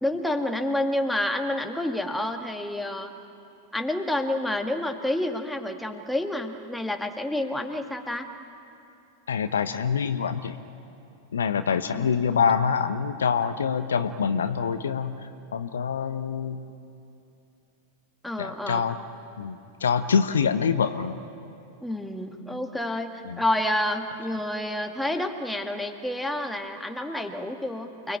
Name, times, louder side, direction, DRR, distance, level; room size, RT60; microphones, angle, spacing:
voice 1, 0.0-3.1 3.7-8.3 11.9-12.4 18.2-18.9 21.8-28.2, left 1 dB, 5° left, 4 dB, 1.9 m, -29 dB
voice 2, 9.3-10.6 11.3-16.6 18.4-19.0 19.4-21.2 23.2-23.4, left 6 dB, 70° left, 10 dB, 1.1 m, -25 dB
29.5 x 21.5 x 9.0 m, 2.7 s
figure-of-eight pair, 90°, 0 cm